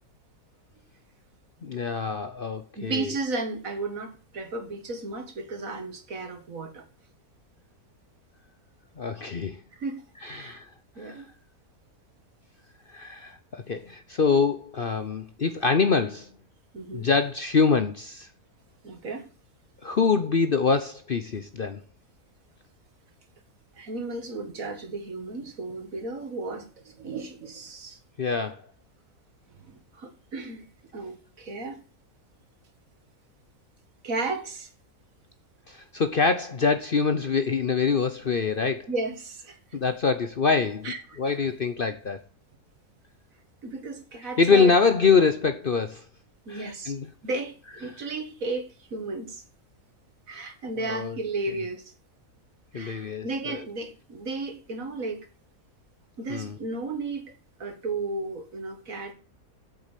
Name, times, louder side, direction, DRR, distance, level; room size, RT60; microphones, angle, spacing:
voice 1, 1.6-3.1 9.0-9.6 10.2-10.6 11.0-11.2 12.9-16.3 16.9-18.3 19.8-21.8 28.2-28.6 35.7-38.9 39.7-42.2 44.4-46.0 46.5-47.1 50.8-51.2 52.7-53.6 56.3-56.6, left 5 dB, 45° left, 0.8 m, -25 dB
voice 2, 2.8-6.8 9.8-10.6 11.0-11.3 16.7-17.1 18.8-19.3 23.8-28.0 29.5-30.7 30.9-31.8 34.0-34.7 38.5-38.6 38.9-39.8 40.8-41.5 43.6-44.7 46.5-46.9 47.2-49.4 50.3-51.9 52.7-55.3 56.2-57.3 57.6-59.1, right 3 dB, 60° right, 2.2 m, -34 dB
8.5 x 7.5 x 7.3 m
omnidirectional pair, 1.6 m